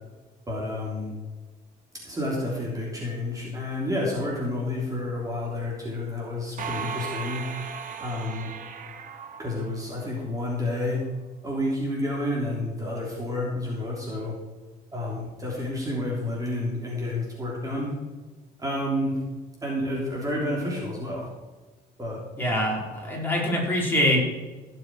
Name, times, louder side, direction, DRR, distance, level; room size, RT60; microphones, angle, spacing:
voice 1, 0.5-1.1 2.0-7.5 8.0-8.5 9.4-11.1 11.4-14.4 14.9-17.9 18.6-19.2 19.6-21.3 22.0-22.2, left 1 dB, 20° right, -3 dB, 3.3 m, -30 dB
sound 1, 6.6-10.2, right 6 dB, 50° right, 1.5 m, -37 dB
voice 2, 22.4-24.2, left 1 dB, 10° left, -4 dB, 4.8 m, -24 dB
16.5 x 7.4 x 4.8 m, 1.3 s
cardioid pair, 110°, 17 cm